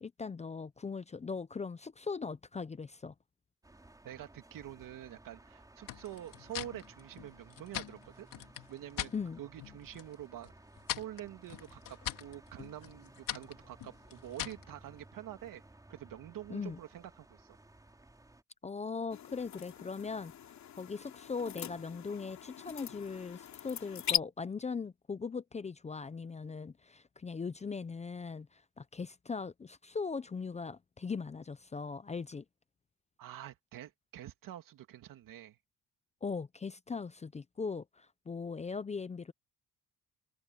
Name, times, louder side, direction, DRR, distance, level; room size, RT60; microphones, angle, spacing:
voice 1, 0.0-3.1 9.1-9.4 16.5-16.8 18.6-20.3 20.8-32.4 36.2-39.3, left 5 dB, 20° left, 0.6 m, -39 dB
sound 1, 3.6-18.4, right 2 dB, 10° right, 4.6 m, -58 dB
voice 2, 4.0-8.3 8.7-10.5 10.9-15.6 15.9-17.6 33.2-35.6, right 12 dB, 70° right, 2.8 m, -47 dB
sound 2, 5.9-9.2 9.6-10.1 10.4-14.7, left 12 dB, 75° left, 4.0 m, -42 dB
sound 3, 19.1-24.2, left 9 dB, 55° left, 2.9 m, -39 dB
open air
cardioid pair, 135°, 34 cm